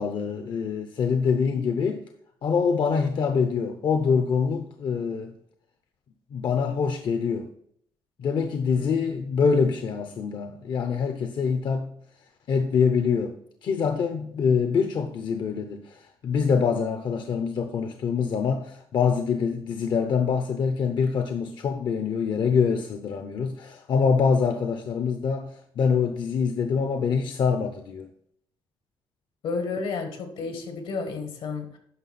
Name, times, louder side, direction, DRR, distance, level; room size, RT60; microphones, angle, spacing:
voice 1, 0.0-2.0 2.4-5.3 6.3-7.5 8.2-11.9 12.5-28.1, left 6 dB, 55° left, 0.7 m, -25 dB
voice 2, 29.4-31.8, left 4 dB, 80° left, 1.8 m, -31 dB
9.6 x 5.8 x 4.2 m
cardioid pair, 115°, 9 cm